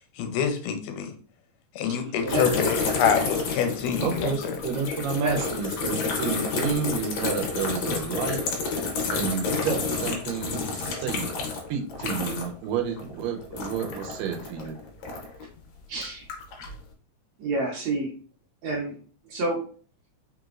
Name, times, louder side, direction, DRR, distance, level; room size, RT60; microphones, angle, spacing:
voice 1, 0.2-1.1 1.8-4.3, left 7 dB, 85° left, 6 dB, 2.2 m, -26 dB
sound 1, 2.3-12.7 12.9-15.4 15.9-16.8, left 4 dB, 65° left, 1.9 m, -30 dB
voice 2, 4.0-8.4 9.1-11.3 11.7-14.8, right 6 dB, 85° right, 4 dB, 2.4 m, -30 dB
voice 3, 15.9-16.3 17.4-18.1 18.6-18.9 19.3-19.6, right 2 dB, 70° right, -2 dB, 1.8 m, -28 dB
5.2 x 3.0 x 2.4 m, 0.41 s
omnidirectional pair, 3.8 m